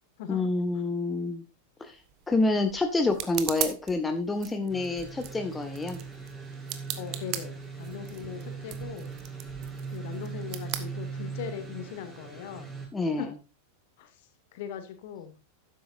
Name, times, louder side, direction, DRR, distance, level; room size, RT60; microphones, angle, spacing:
voice 1, 0.3-1.4 1.8-2.0 2.3-6.0 12.9-13.3, left 2 dB, 10° left, 6 dB, 1.6 m, -28 dB
sound 1, 1.8-11.7, right 12 dB, 40° right, 1.4 m, -40 dB
sound 2, 4.7-12.9, right 5 dB, 15° right, 7.4 m, -40 dB
voice 2, 7.0-9.1 9.9-12.7 13.2-13.3 14.0-14.2 14.5-15.3, left 8 dB, 50° left, 9 dB, 2.3 m, -40 dB
12.5 x 10.0 x 2.6 m, 0.30 s
figure-of-eight pair, 90°, 0 cm